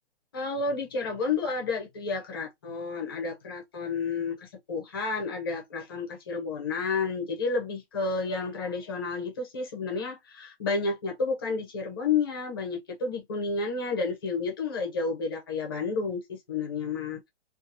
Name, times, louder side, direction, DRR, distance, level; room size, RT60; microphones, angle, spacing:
voice 1, 0.3-17.2, left 4 dB, 20° left, 0.5 m, -31 dB
2.7 x 2.4 x 2.6 m
hypercardioid pair, 170°, 34 cm